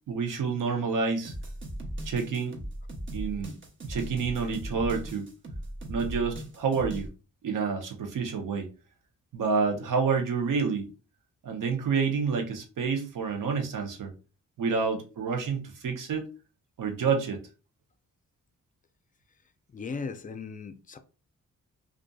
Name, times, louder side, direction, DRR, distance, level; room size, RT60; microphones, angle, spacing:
voice 1, 0.1-1.3 2.1-2.6 3.1-3.6 3.8-5.3 5.9-7.1 7.4-8.7 9.3-10.9 11.4-14.1 14.6-16.2 16.8-17.4, right 5 dB, 75° right, 0.7 m, -28 dB
sound 1, 1.2-7.1, right 1 dB, 35° right, 0.8 m, -38 dB
voice 2, 19.7-21.0, left 5 dB, 25° left, 0.4 m, -37 dB
2.5 x 2.4 x 2.3 m
cardioid pair, 60°, 33 cm